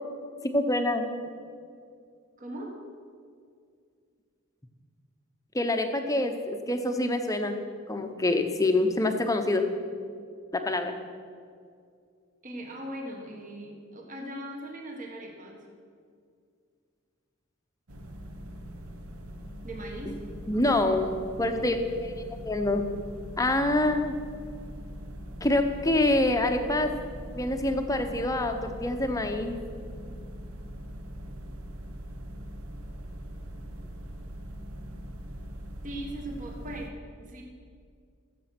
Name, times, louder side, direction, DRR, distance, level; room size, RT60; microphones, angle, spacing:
voice 1, 0.5-1.0 5.5-7.6 7.9-9.6 10.5-10.9 20.1-20.2 20.5-22.1 22.4-22.9 23.4-24.1 25.4-26.9 27.3-29.6, left 2 dB, 15° left, 6 dB, 0.8 m, -26 dB
voice 2, 2.4-2.8 12.4-15.6 19.6-20.2 35.8-37.4, right 1 dB, 40° right, 1 dB, 1.5 m, -39 dB
sound 1, 17.9-36.9, equal, 85° right, 1.1 m, -41 dB
14.5 x 7.7 x 5.9 m, 2.2 s
head